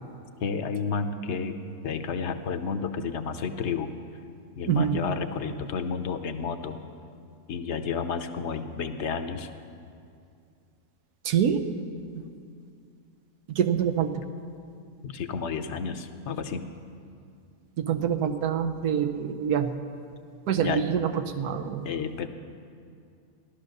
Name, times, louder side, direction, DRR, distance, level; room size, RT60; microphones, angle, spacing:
voice 1, 0.4-1.6 1.8-3.9 4.5-6.8 7.5-9.5 15.0-16.7 20.6-20.8 21.8-22.3, left 5 dB, 55° left, 8 dB, 1.0 m, -31 dB
voice 2, 4.7-5.0 11.2-11.6 13.5-14.2 17.8-19.7 20.5-21.9, right 8 dB, 90° right, 9 dB, 1.4 m, -26 dB
15.5 x 12.0 x 6.6 m, 2.4 s
omnidirectional pair, 1.6 m